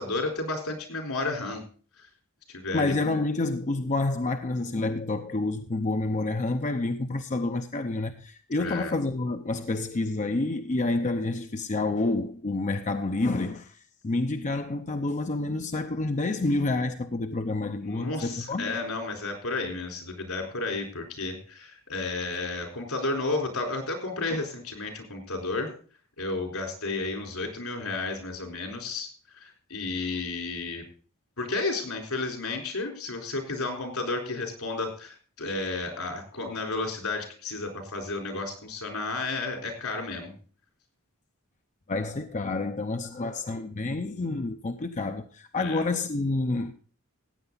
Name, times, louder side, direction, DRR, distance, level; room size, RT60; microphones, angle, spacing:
voice 1, 0.0-1.6 2.5-2.9 8.6-8.9 17.8-25.7 26.2-29.1 29.4-30.8 31.4-40.3 45.6-45.8, left 3 dB, 80° left, 4.0 m, -32 dB
voice 2, 2.7-18.8 24.3-24.4 41.9-46.7, left 2 dB, 35° left, 0.6 m, -28 dB
15.0 x 9.0 x 3.9 m
head